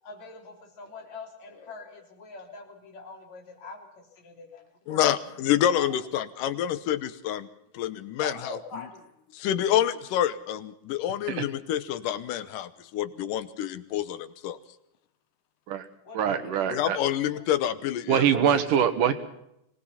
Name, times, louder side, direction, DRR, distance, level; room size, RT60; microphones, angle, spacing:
voice 1, 0.0-5.1 5.7-5.9 8.2-9.1 16.0-17.0 17.3-17.4, left 3 dB, 60° left, 1 dB, 4.6 m, -43 dB
voice 2, 4.9-7.5 7.7-8.3 9.3-14.6 16.7-18.6, left 11 dB, 90° left, 13 dB, 2.6 m, -27 dB
voice 3, 16.1-17.0 18.1-19.1, right 8 dB, 85° right, 9 dB, 3.0 m, -23 dB
24.0 x 19.5 x 5.7 m, 0.80 s
omnidirectional pair, 3.6 m